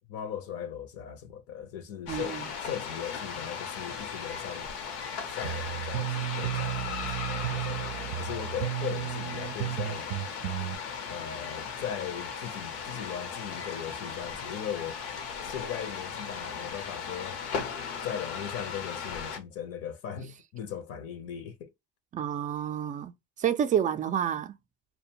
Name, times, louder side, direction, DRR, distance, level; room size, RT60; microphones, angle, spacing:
voice 1, 0.1-4.7 5.3-10.1 11.1-15.0 15.4-17.4 18.0-21.7, left 9 dB, 55° left, 0.6 m, -38 dB
sound 1, 2.1-19.4, left 6 dB, 85° left, 0.9 m, -37 dB
voice 2, 2.1-2.5 22.1-23.1 23.4-24.5, right 9 dB, 25° right, 0.4 m, -29 dB
sound 2, 5.4-10.8, right 14 dB, 85° right, 0.5 m, -33 dB
2.5 x 2.2 x 2.7 m
cardioid pair, 120°, 29 cm